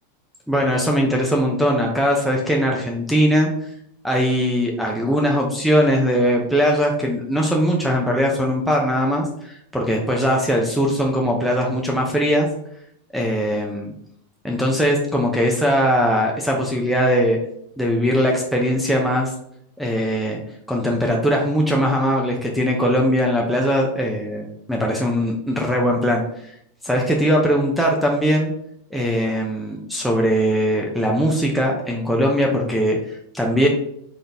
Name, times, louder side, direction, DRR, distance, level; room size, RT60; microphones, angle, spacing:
voice 1, 0.5-3.7 4.0-12.5 13.1-13.9 14.4-17.4 17.8-19.3 19.8-20.4 20.7-26.5 26.8-28.5 28.9-33.7, equal, ahead, -1 dB, 0.6 m, -20 dB
4.0 x 3.9 x 3.4 m, 0.73 s
supercardioid pair, 140°, 0 cm